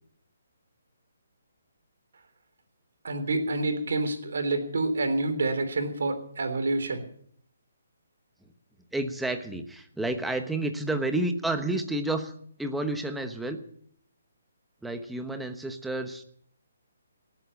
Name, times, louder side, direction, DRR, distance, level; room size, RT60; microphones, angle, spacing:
voice 1, 3.0-7.0, right 2 dB, 70° right, 8 dB, 3.5 m, -28 dB
voice 2, 8.9-12.3 12.6-13.6 14.8-16.2, right 2 dB, 5° right, 6 dB, 1.1 m, -30 dB
18.5 x 8.9 x 7.1 m, 0.64 s
hypercardioid pair, 160°, 0 cm